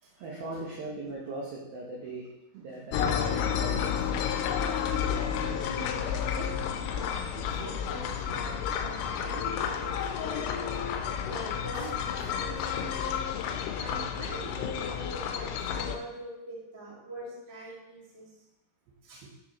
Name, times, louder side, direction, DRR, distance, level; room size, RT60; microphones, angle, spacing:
voice 1, 0.2-2.3 2.5-4.1 13.9-14.0 19.2-19.3, right 2 dB, 80° right, -4 dB, 2.1 m, -39 dB
sound 1, 2.9-16.0, left 8 dB, 90° left, 3.2 m, -31 dB
voice 2, 4.4-13.3 13.7-18.3 19.0-19.2, right 1 dB, 60° right, -6 dB, 1.1 m, -44 dB
10.0 x 4.8 x 3.0 m, 0.94 s
omnidirectional pair, 5.7 m